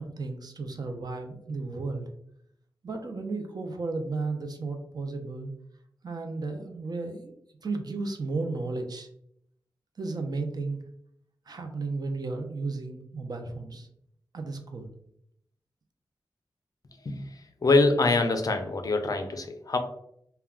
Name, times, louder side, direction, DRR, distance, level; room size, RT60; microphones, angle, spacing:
voice 1, 0.0-2.1 2.8-5.5 6.0-7.3 7.6-9.1 10.0-10.8 11.5-13.9 14.3-14.9, right 3 dB, 50° right, 4 dB, 0.4 m, -34 dB
voice 2, 17.6-19.8, left 3 dB, 45° left, 6 dB, 0.4 m, -24 dB
2.3 x 2.2 x 3.4 m, 0.72 s
wide cardioid pair, 115°, 9 cm